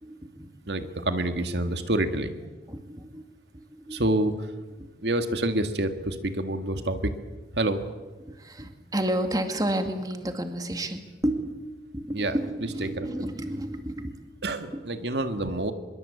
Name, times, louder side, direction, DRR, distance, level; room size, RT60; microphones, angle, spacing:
voice 1, 0.0-0.5 0.8-1.0 2.7-3.2 3.5-4.3 4.8-4.9 8.2-11.6 11.9-14.2 14.7-14.8, right 1 dB, 20° right, 6 dB, 2.1 m, -31 dB
voice 2, 0.7-2.3 3.9-4.5 5.0-7.1 7.5-7.8 12.1-12.4 12.8-13.1 14.4-15.7, right 1 dB, 75° right, 8 dB, 1.9 m, -27 dB
24.5 x 22.5 x 8.5 m, 1.2 s
head